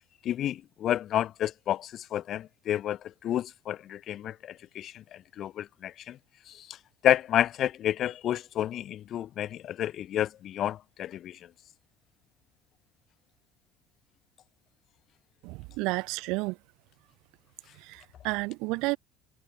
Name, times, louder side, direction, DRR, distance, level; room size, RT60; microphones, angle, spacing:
voice 1, 0.2-6.2 6.5-6.8 7.0-11.4, left 11 dB, 45° left, 2.0 m, -30 dB
voice 2, 15.4-16.5 17.9-19.0, right 25 dB, 75° right, 2.6 m, -31 dB
cardioid pair, 130°, 0 cm